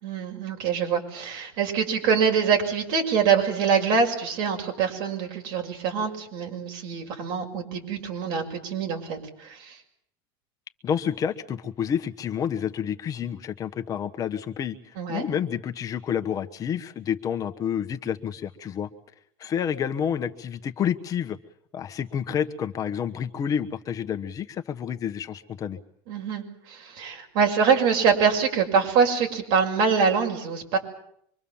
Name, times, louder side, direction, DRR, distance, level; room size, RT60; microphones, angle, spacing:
voice 1, 0.0-9.7 15.0-15.3 26.1-30.8, right 6 dB, 70° right, 2 dB, 6.2 m, -24 dB
voice 2, 10.8-18.9 19.4-21.4 21.7-25.8, left 8 dB, 30° left, 7 dB, 1.2 m, -29 dB
25.5 x 23.0 x 7.3 m, 0.70 s
supercardioid pair, 145°, 12 cm